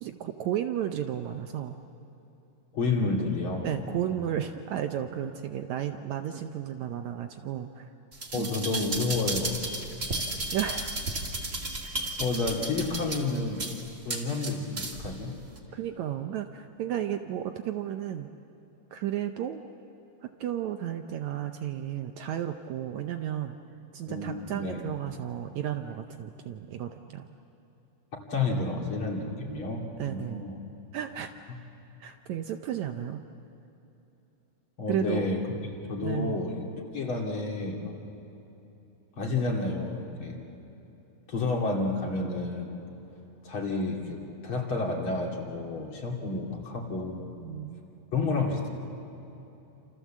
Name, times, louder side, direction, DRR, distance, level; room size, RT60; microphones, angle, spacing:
voice 1, 0.0-1.8 3.6-7.9 8.3-8.5 10.5-11.0 11.8-12.0 15.7-18.3 18.9-19.6 20.2-23.6 23.9-27.3 30.0-30.4 30.9-31.3 32.0-33.2 34.9-35.3 36.0-36.5 47.4-47.8, right 11 dB, 75° right, 6 dB, 1.9 m, -33 dB
voice 2, 2.7-3.7 4.0-4.2 8.3-9.5 12.2-13.6 14.0-15.4 24.1-24.8 28.3-30.5 34.8-35.4 35.9-37.9 39.2-40.4 41.3-42.8 43.4-47.3 48.1-48.7, left 3 dB, 40° left, 0 dB, 3.0 m, -30 dB
sound 1, 8.1-15.1 15.6-15.7, right 2 dB, 25° right, 2.0 m, -34 dB
28.5 x 27.5 x 7.4 m, 3.0 s
omnidirectional pair, 3.8 m